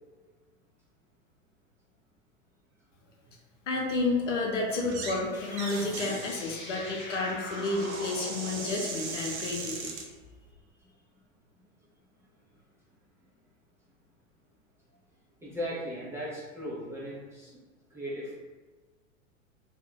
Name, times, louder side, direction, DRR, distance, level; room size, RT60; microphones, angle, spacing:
voice 1, 3.7-9.9, left 2 dB, 65° left, -1 dB, 0.9 m, -31 dB
sound 1, 4.8-5.2 5.5-10.1, right 4 dB, 55° right, 0.7 m, -39 dB
sound 2, 5.3-10.6, left 2 dB, 25° left, 0.7 m, -44 dB
voice 2, 10.4-11.2 11.5-11.6 12.2-12.3 15.4-17.6 17.9-18.4, equal, 5° right, -8 dB, 0.5 m, -38 dB
2.5 x 2.3 x 3.6 m, 1.3 s
figure-of-eight pair, 90°, 40 cm